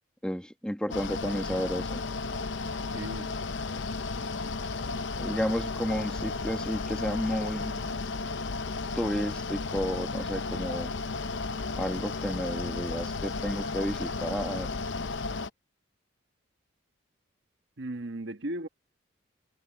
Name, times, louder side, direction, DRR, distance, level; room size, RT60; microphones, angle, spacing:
voice 1, 0.2-2.0 5.2-8.0 8.9-10.9 11.8-14.7, equal, 5° left, 1.5 m, -32 dB
Mechanical fan, 0.9-15.5, left 3 dB, 60° left, 0.7 m, -34 dB
voice 2, 2.9-3.3 17.8-18.7, right 1 dB, 60° right, 1.2 m, -36 dB
head